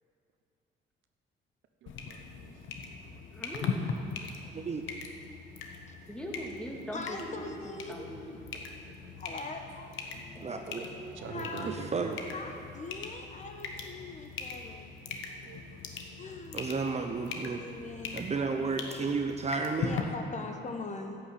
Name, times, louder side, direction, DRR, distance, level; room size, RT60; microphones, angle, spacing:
voice 1, 1.8-3.0 8.8-9.2 10.1-10.5 11.2-12.2 15.4-15.8 17.9-18.0, right 6 dB, 75° right, 6 dB, 0.9 m, -45 dB
sound 1, 1.9-20.0, left 5 dB, 80° left, 1.1 m, -41 dB
voice 2, 3.3-4.1 6.1-8.4 10.3-11.7 20.3-20.4, equal, 5° left, -1 dB, 1.9 m, -42 dB
voice 3, 4.4-4.8 10.4-10.8 11.6-12.1 16.5-17.6 18.1-20.0, right 4 dB, 35° right, 4 dB, 0.7 m, -32 dB
voice 4, 6.9-8.1 9.2-9.9 11.3-14.9 16.2-16.7 17.0-18.3 19.8-21.2, left 3 dB, 35° left, 5 dB, 1.1 m, -42 dB
11.5 x 6.2 x 8.1 m, 2.7 s
cardioid pair, 90°, 20 cm